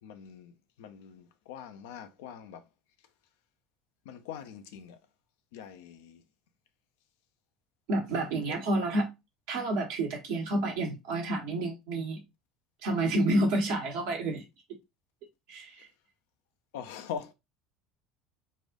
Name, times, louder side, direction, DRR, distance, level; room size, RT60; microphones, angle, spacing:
voice 1, 0.0-2.7 4.0-5.0 5.5-6.2 8.5-8.8 15.8-15.9 16.7-17.3, left 8 dB, 65° left, 0.6 m, -43 dB
voice 2, 7.9-9.1 9.5-12.2 12.8-14.4 15.5-15.9, right 1 dB, 60° right, 1.3 m, -29 dB
4.2 x 2.5 x 3.7 m
figure-of-eight pair, 65°, 0 cm